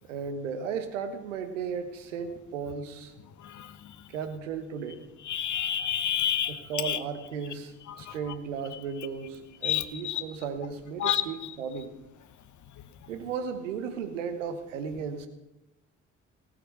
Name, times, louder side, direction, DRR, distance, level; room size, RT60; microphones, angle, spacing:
voice 1, 0.0-3.1 4.1-5.0 6.5-12.0 13.1-15.3, right 6 dB, 85° right, 9 dB, 1.1 m, -35 dB
voice 2, 5.3-6.6 6.8-7.0 8.1-8.2 9.6-10.2 11.0-11.2, left 10 dB, 50° left, 12 dB, 1.1 m, -28 dB
18.0 x 8.0 x 4.7 m, 0.96 s
figure-of-eight pair, 40°, 37 cm